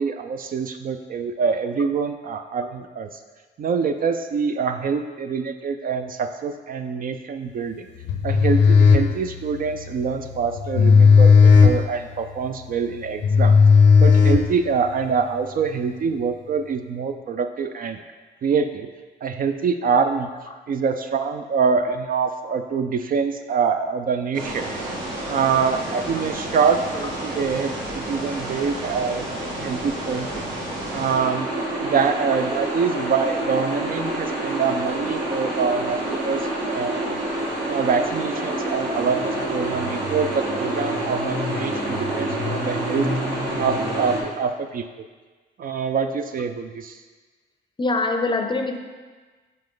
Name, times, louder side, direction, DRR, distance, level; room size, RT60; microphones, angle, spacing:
voice 1, 0.0-3.1 3.6-7.9 8.2-13.6 14.0-18.0 18.4-18.9 19.2-20.3 20.7-24.7 25.3-30.4 30.9-31.5 31.8-37.2 37.7-43.1 43.6-45.1 45.6-47.0, right 5 dB, 45° right, 7 dB, 0.4 m, -25 dB
sound 1, 8.0-15.0, left 5 dB, 70° left, 0.6 m, -15 dB
sound 2, 24.3-44.2, right 1 dB, 70° right, 2.0 m, -28 dB
voice 2, 47.8-48.8, left 3 dB, 25° left, 5 dB, 0.6 m, -23 dB
5.3 x 5.1 x 3.8 m, 1.3 s
cardioid pair, 90°, 20 cm